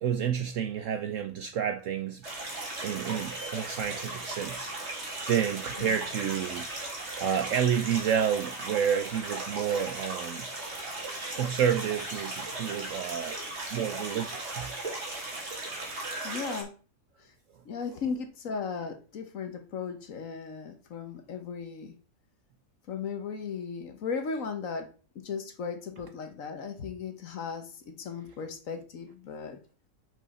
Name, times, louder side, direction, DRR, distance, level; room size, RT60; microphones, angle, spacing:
voice 1, 0.0-2.2 2.8-4.7 5.3-6.7 7.2-10.5 11.3-13.4 13.7-14.7, right 8 dB, 70° right, 0.8 m, -29 dB
sound 1, 2.2-16.6, right 2 dB, 40° right, 2.1 m, -37 dB
voice 2, 16.2-16.7 17.2-17.3 17.6-21.9 22.9-29.6, left 5 dB, 55° left, 1.3 m, -36 dB
5.5 x 5.4 x 4.2 m
omnidirectional pair, 1.8 m